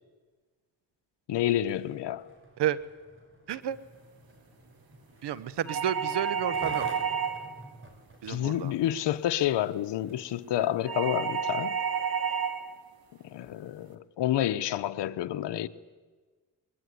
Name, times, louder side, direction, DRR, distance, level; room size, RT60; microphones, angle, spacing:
voice 1, 1.3-2.3 8.3-11.8 13.2-15.7, left 12 dB, 85° left, 1.0 m, -29 dB
Skateboard, 1.5-10.4 11.0-11.1, right 1 dB, 30° right, 5.7 m, -49 dB
voice 2, 3.5-3.8 5.2-6.9 8.2-8.7, right 10 dB, 75° right, 1.2 m, -31 dB
sound 1, 5.7-7.6 10.9-12.7, right 7 dB, 55° right, 3.2 m, -30 dB
21.5 x 21.0 x 9.6 m
cardioid pair, 75°, 41 cm